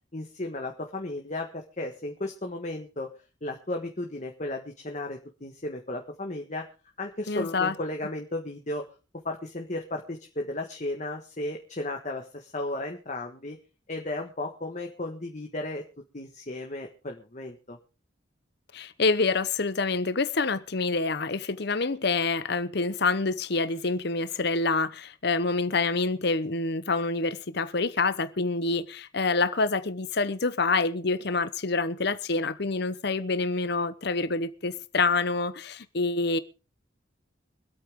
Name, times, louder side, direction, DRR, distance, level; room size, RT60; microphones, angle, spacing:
voice 1, 0.1-3.1 3.4-6.6 7.0-8.8 9.2-13.6 13.9-15.8 16.1-17.8, left 2 dB, 40° left, 1.5 m, -34 dB
voice 2, 7.3-7.7 18.7-36.4, left 3 dB, 55° left, 0.9 m, -27 dB
25.0 x 8.6 x 3.7 m
head